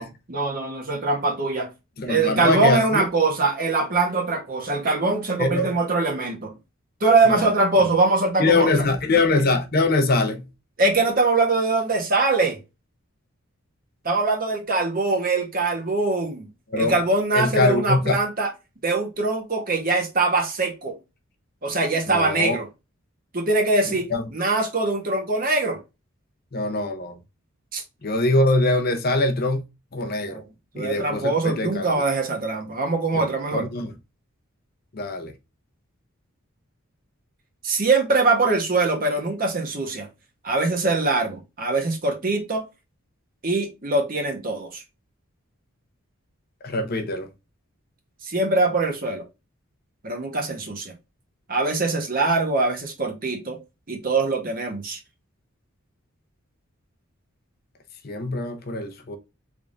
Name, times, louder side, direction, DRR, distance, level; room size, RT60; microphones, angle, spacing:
voice 1, 0.0-1.7 2.1-6.5 7.0-8.7 10.8-12.6 14.0-16.5 16.8-18.5 18.8-21.0 21.6-22.7 23.3-25.8 27.7-27.8 30.2-30.4 30.7-33.7 37.6-40.1 40.4-42.6 43.4-44.8 48.2-49.2 50.0-50.9 51.5-53.6 53.9-55.0, right 3 dB, 40° right, 1.0 m, -22 dB
voice 2, 2.0-3.0 5.4-5.7 7.3-7.5 8.4-10.4 16.7-17.0 17.3-18.2 22.1-22.6 23.9-24.2 26.5-27.2 28.0-29.6 29.9-30.4 30.8-31.9 33.1-33.2 33.5-33.9 34.9-35.3 46.6-47.3 58.0-59.2, left 2 dB, 45° left, 0.7 m, -23 dB
3.5 x 3.5 x 2.4 m
head